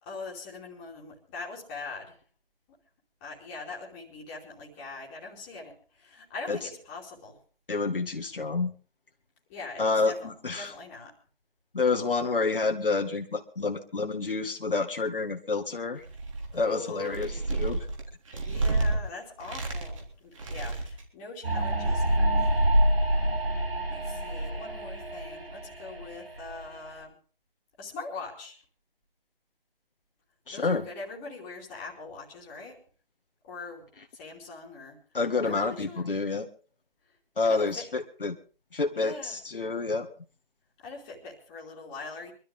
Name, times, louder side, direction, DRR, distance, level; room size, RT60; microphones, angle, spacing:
voice 1, 0.0-2.2 3.2-7.4 9.5-11.1 16.5-17.6 18.4-22.8 23.9-27.2 27.8-28.6 30.5-32.8 33.4-33.9 34.1-35.0 35.4-36.1 37.1-37.2 37.4-37.9 39.0-39.4 40.8-42.3, left 3 dB, 15° left, -3 dB, 2.9 m, -42 dB
voice 2, 7.7-8.7 9.8-10.7 11.7-16.0 16.5-17.8 30.5-30.9 35.1-36.5 37.4-38.4 38.7-40.1, left 3 dB, 65° left, 5 dB, 2.0 m, -28 dB
sound 1, 16.0-16.6 17.0-19.0 19.4-20.1 20.4-21.0, right 3 dB, 35° right, 3.5 m, -30 dB
sound 2, 21.4-26.9, right 1 dB, 80° right, 6.9 m, -27 dB
24.0 x 13.0 x 3.6 m, 0.38 s
figure-of-eight pair, 160°, 30 cm